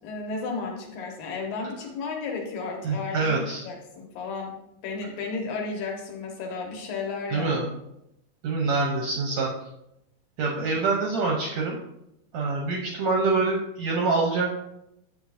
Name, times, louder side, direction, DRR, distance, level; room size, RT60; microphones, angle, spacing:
voice 1, 0.0-4.5 4.8-7.6 10.6-10.7, left 4 dB, 75° left, 1 dB, 3.1 m, -33 dB
voice 2, 2.8-3.6 7.3-7.7 8.4-9.5 10.4-11.8 12.3-14.6, right 3 dB, 75° right, 0 dB, 1.6 m, -25 dB
9.6 x 7.1 x 2.7 m, 0.84 s
omnidirectional pair, 4.1 m